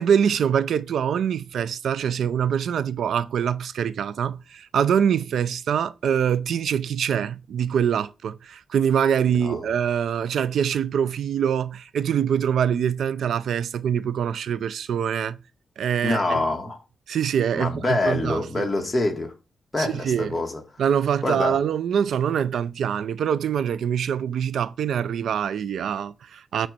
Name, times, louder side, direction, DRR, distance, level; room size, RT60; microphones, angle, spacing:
voice 1, 0.0-15.4 15.8-16.4 17.1-18.7 19.8-20.4 20.8-26.7, right 8 dB, 80° right, 0.4 m, -24 dB
voice 2, 9.3-9.7 16.0-16.8 17.6-19.3 19.7-20.6 21.2-21.5, left 2 dB, 20° left, 1.8 m, -25 dB
8.7 x 3.2 x 6.6 m
wide cardioid pair, 130°, 0 cm